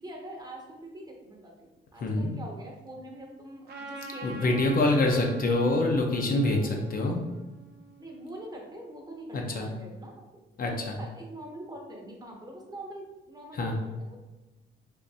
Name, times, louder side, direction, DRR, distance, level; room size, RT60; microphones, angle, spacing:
voice 1, 0.0-4.8 5.1-5.6 6.6-6.8 7.1-7.4 8.0-14.2, right 1 dB, 20° right, 0 dB, 0.7 m, -44 dB
voice 2, 2.0-2.3 4.2-6.6 6.9-7.2 9.3-9.7 10.6-11.0 13.5-13.7, left 2 dB, 45° left, 1 dB, 0.6 m, -25 dB
Trumpet, 3.7-8.3, right 2 dB, 55° right, 0.6 m, -45 dB
3.5 x 2.5 x 2.6 m, 1.1 s
cardioid pair, 90°, 20 cm